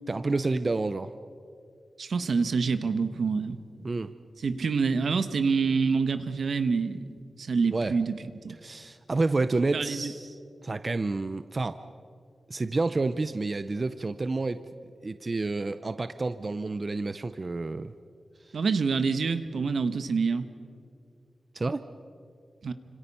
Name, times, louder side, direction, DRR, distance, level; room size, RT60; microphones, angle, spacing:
voice 1, 0.1-1.1 3.8-4.1 7.7-7.9 8.6-10.4 10.6-11.8 12.5-14.6 15.0-17.9 21.5-21.8, right 3 dB, 30° right, 11 dB, 0.6 m, -29 dB
voice 2, 2.0-3.6 4.4-7.0 7.4-8.1 8.4-8.6 9.7-10.1 18.5-20.5 22.6-22.7, right 5 dB, 70° right, 10 dB, 1.3 m, -26 dB
30.0 x 26.0 x 5.6 m, 2.3 s
wide cardioid pair, 170°, 0 cm